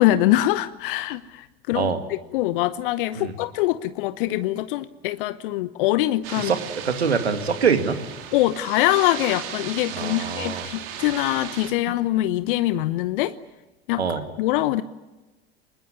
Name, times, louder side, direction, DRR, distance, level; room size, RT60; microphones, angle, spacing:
voice 1, 0.0-6.5 8.3-13.3 13.9-14.8, left 15 dB, 55° left, 15 dB, 0.9 m, -23 dB
sound 1, 6.2-11.7, right 9 dB, 55° right, 3.4 m, -36 dB
voice 2, 6.8-8.0 9.9-10.6 14.0-14.2, right 6 dB, 80° right, 8 dB, 2.3 m, -24 dB
25.0 x 20.5 x 9.7 m, 1.1 s
figure-of-eight pair, 80°, 32 cm